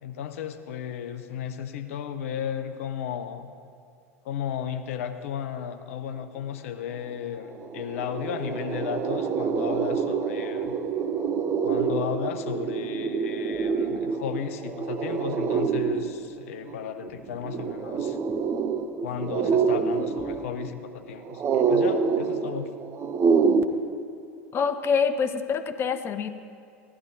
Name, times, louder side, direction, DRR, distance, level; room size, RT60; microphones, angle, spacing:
voice 1, 0.0-3.5 4.2-10.8 11.6-18.2 19.0-22.7, left 9 dB, 65° left, 8 dB, 0.7 m, -34 dB
sound 1, 7.1-7.2 7.4-23.6, right 5 dB, 30° right, 0.7 m, -27 dB
voice 2, 24.5-26.3, left 6 dB, 30° left, 10 dB, 0.6 m, -25 dB
16.0 x 11.0 x 2.7 m, 2.4 s
figure-of-eight pair, 80°, 8 cm